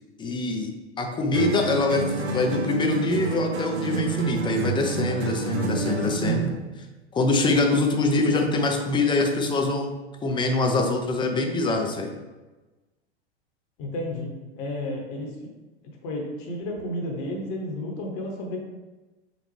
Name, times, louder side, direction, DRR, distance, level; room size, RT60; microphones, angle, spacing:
voice 1, 0.2-0.7 1.0-6.5 7.1-9.9 10.2-12.1, left 3 dB, 15° left, 3 dB, 0.5 m, -24 dB
sound 1, 1.3-6.7, right 4 dB, 75° right, 0.7 m, -28 dB
voice 2, 13.8-14.3 14.6-15.3 16.0-18.6, left 1 dB, 45° left, 1 dB, 1.0 m, -31 dB
5.1 x 2.5 x 3.2 m, 1.2 s
figure-of-eight pair, 90°, 33 cm